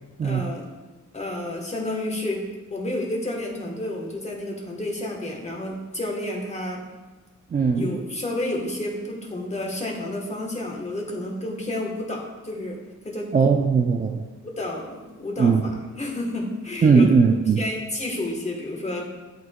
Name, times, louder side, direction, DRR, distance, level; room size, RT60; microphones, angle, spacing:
voice 1, 0.2-0.7 1.1-2.4 2.7-6.8 7.7-12.8 13.0-13.3 14.4-17.1 17.6-19.0, left 1 dB, 20° left, 0 dB, 1.2 m, -30 dB
voice 2, 7.5-7.9 13.3-14.2 15.4-15.6 16.8-17.6, right 5 dB, 30° right, 1 dB, 0.4 m, -18 dB
10.5 x 4.6 x 2.3 m, 1.2 s
wide cardioid pair, 130°, 30 cm